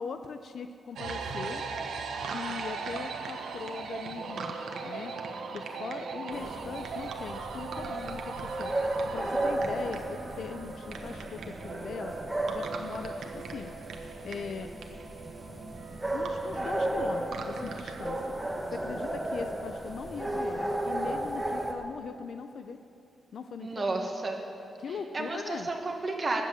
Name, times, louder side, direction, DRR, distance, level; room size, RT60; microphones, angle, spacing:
voice 1, 0.0-1.6 2.3-5.1 5.5-8.7 9.1-12.1 12.5-13.7 14.2-14.7 16.1-18.2 18.7-22.8 23.3-23.9 24.8-25.7, left 6 dB, 60° left, 8 dB, 0.6 m, -40 dB
sound 1, 1.0-18.1, right 4 dB, 75° right, 1.3 m, -39 dB
sound 2, 6.3-21.7, right 1 dB, 10° right, 1.2 m, -34 dB
voice 2, 23.6-24.4 25.1-26.4, right 2 dB, 30° right, 2 dB, 1.6 m, -31 dB
19.5 x 8.4 x 7.5 m, 2.7 s
wide cardioid pair, 155°, 0 cm